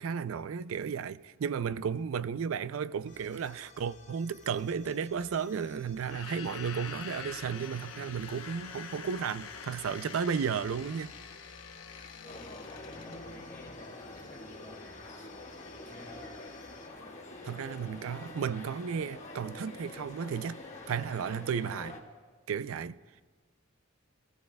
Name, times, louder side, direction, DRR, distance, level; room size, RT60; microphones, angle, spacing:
voice 1, 0.0-11.1 17.4-20.6 20.9-22.0 22.5-23.0, right 6 dB, 70° right, 0.4 m, -34 dB
sound 1, 3.1-16.9, left 5 dB, 60° left, 2.0 m, -56 dB
sound 2, 6.0-13.2, left 6 dB, 85° left, 1.0 m, -45 dB
voice 2, 12.2-12.6 12.9-16.4, equal, 15° left, 2.0 m, -53 dB
sound 3, 12.3-22.0, left 2 dB, 35° left, 1.4 m, -46 dB
22.5 x 14.5 x 2.2 m
head